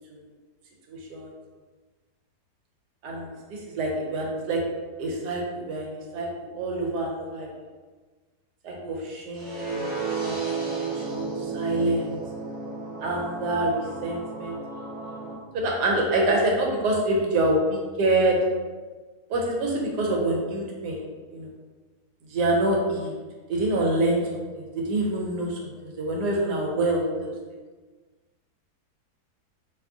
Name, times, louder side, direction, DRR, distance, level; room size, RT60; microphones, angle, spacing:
voice 1, 0.9-1.3 3.0-4.6 5.0-6.3 6.5-7.5 8.6-9.8 10.2-10.4 10.6-12.2 13.0-14.6 15.5-18.4 19.3-21.0 21.3-21.5 22.3-23.2 23.5-27.3, right 2 dB, 80° right, -1 dB, 1.2 m, -26 dB
sound 1, 9.3-15.3, right 4 dB, 10° right, 0.7 m, -33 dB
3.5 x 2.9 x 2.5 m, 1.4 s
omnidirectional pair, 1.7 m